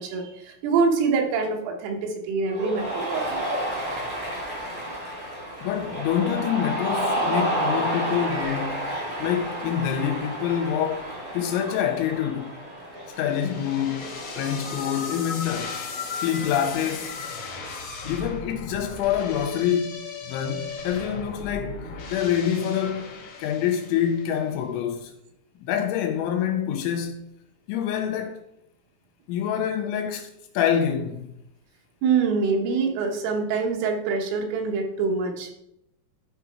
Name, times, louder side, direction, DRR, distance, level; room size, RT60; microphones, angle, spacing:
voice 1, 0.0-3.5 32.0-35.5, right 5 dB, 80° right, 3.7 m, -25 dB
Cheering, 2.5-17.3, equal, 30° right, 0.9 m, -31 dB
voice 2, 4.6-5.0 5.6-8.9 9.2-12.5 13.2-15.8 16.1-17.2 18.1-21.8 22.1-25.1 25.6-27.2 27.7-28.4 29.3-31.3, left 9 dB, 85° left, 2.8 m, -26 dB
sound 1, 13.1-24.4, left 5 dB, 65° left, 1.8 m, -36 dB
13.0 x 4.7 x 4.2 m
omnidirectional pair, 5.8 m